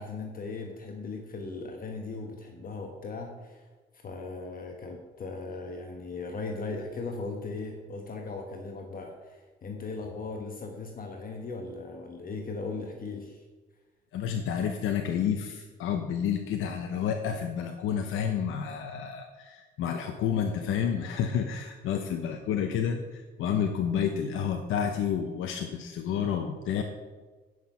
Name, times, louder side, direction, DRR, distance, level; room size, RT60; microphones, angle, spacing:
voice 1, 0.0-3.7 4.0-13.4, left 3 dB, 45° left, 3 dB, 1.2 m, -38 dB
voice 2, 14.1-26.8, left 8 dB, 85° left, 5 dB, 0.8 m, -30 dB
9.5 x 6.1 x 5.6 m, 1.3 s
cardioid pair, 90°, 20 cm